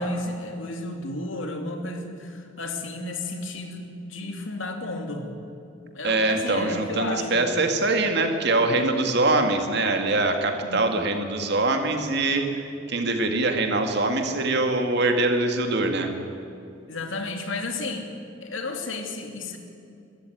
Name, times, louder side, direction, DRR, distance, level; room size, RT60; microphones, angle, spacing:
voice 1, 0.0-5.3 5.9-7.5 10.6-10.8 16.9-18.1 18.4-19.6, left 2 dB, 70° left, 4 dB, 2.6 m, -32 dB
voice 2, 6.0-16.1, right 2 dB, 55° right, 5 dB, 2.2 m, -23 dB
22.0 x 13.5 x 9.6 m, 2.5 s
head